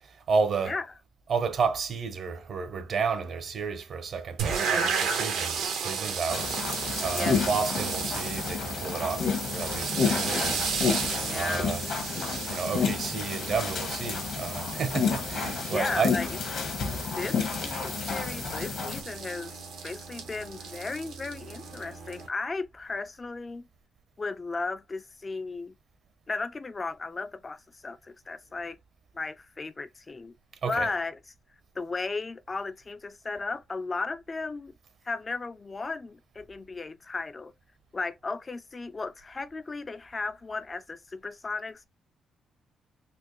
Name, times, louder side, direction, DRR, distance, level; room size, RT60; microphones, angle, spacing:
voice 1, 0.0-0.8 1.3-6.5 7.0-10.7 11.3-11.9 12.5-16.1 30.6-30.9, right 5 dB, 55° right, 0.7 m, -31 dB
sound 1, 4.4-22.3, right 6 dB, 90° right, 1.0 m, -34 dB
sound 2, 6.3-19.0, left 5 dB, 65° left, 1.1 m, -30 dB
voice 2, 11.2-11.7 15.7-16.4 17.2-23.7 24.2-25.7 26.3-28.8 29.1-30.3 30.7-31.2 31.8-34.7 35.0-37.5 37.9-41.9, left 3 dB, 30° left, 0.3 m, -35 dB
4.2 x 2.3 x 3.0 m
cardioid pair, 90°, 0 cm